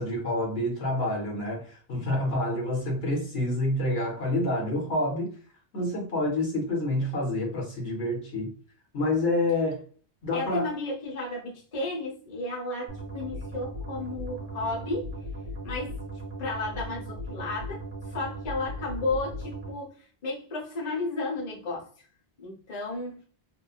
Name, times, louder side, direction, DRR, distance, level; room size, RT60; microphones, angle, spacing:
voice 1, 0.0-5.3 5.7-8.5 8.9-9.8 10.2-10.7, left 1 dB, 65° left, 1.1 m, -28 dB
voice 2, 10.3-15.1 15.6-16.0 16.4-17.8 18.0-22.1 22.4-23.2, left 2 dB, 40° left, 0.8 m, -33 dB
sound 1, 12.9-19.7, equal, 40° right, 0.7 m, -37 dB
3.0 x 2.1 x 2.3 m
omnidirectional pair, 1.1 m